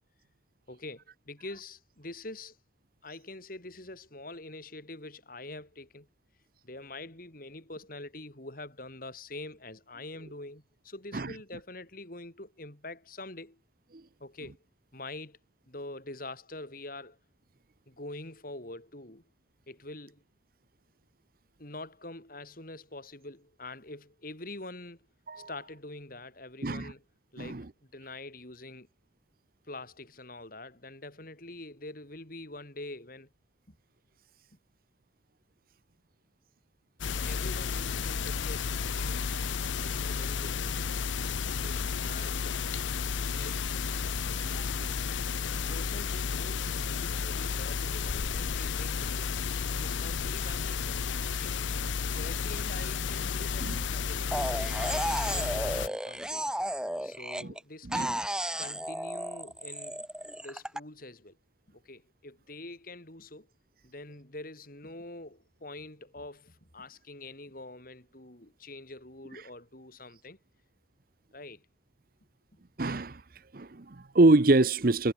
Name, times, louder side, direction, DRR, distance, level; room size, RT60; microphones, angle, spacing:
voice 1, 0.7-2.6 3.0-6.1 6.6-13.6 14.2-14.6 14.9-15.4 15.7-17.2 17.9-19.2 19.7-20.2 21.6-25.0 25.4-27.0 27.3-28.9 29.7-33.3 33.7-33.8 37.2-38.8 39.8-40.8 41.4-42.6 43.3-43.7 45.5-49.3 49.8-51.6 52.1-56.5 57.0-58.2 58.6-60.0 60.4-61.4 61.7-63.5 63.8-70.4 71.3-71.7, left 2 dB, 50° left, 3.6 m, -45 dB
sound 1, 37.0-55.9, left 6 dB, 80° left, 0.7 m, -32 dB
voice 2, 44.5-44.9 53.6-53.8 57.4-57.5 57.8-58.2 72.8-73.2 73.5-75.1, right 2 dB, 50° right, 0.8 m, -26 dB
sound 2, 54.3-57.6 57.9-60.8, right 1 dB, 5° right, 2.2 m, -33 dB
head